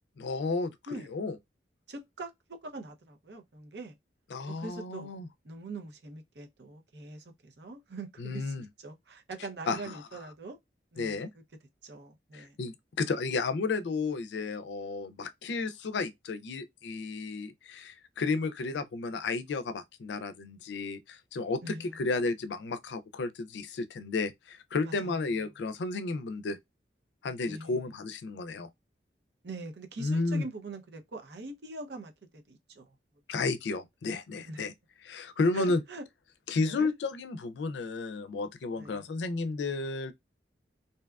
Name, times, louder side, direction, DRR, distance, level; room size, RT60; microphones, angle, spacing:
voice 1, 0.2-1.4 4.3-5.3 8.2-8.7 9.7-10.2 11.0-11.3 12.3-26.6 27.2-28.7 30.0-30.5 33.3-34.7 35.0-35.8 36.5-40.1, left 3 dB, 80° left, 0.4 m, -32 dB
voice 2, 1.9-3.9 4.5-5.1 5.4-10.6 10.9-11.2 11.8-12.6 21.6-22.0 24.8-25.2 27.5-27.8 29.4-33.0 34.4-34.7 35.5-36.0 36.6-36.9 38.8-39.1, right 2 dB, 70° right, 0.6 m, -43 dB
2.7 x 2.3 x 2.3 m
head